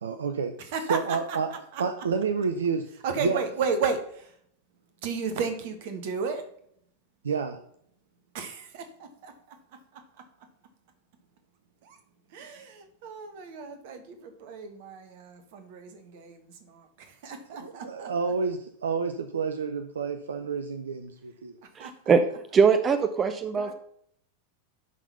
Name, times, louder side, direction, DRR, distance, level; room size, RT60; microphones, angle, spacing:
voice 1, 0.0-0.5 0.9-1.5 1.8-2.9 3.2-3.4 7.2-7.6 17.6-21.5, right 5 dB, 70° right, 9 dB, 0.6 m, -29 dB
voice 2, 0.7-1.4 1.7-1.8 3.0-4.3 5.0-6.4 8.3-8.8 9.2-9.3 11.8-12.0 12.3-18.1 21.8-22.1 23.6-23.7, right 5 dB, 50° right, 7 dB, 1.4 m, -33 dB
voice 3, 21.8-22.2 22.5-23.7, right 6 dB, 25° right, 10 dB, 0.6 m, -22 dB
11.0 x 4.0 x 5.5 m, 0.68 s
figure-of-eight pair, 90°, 0 cm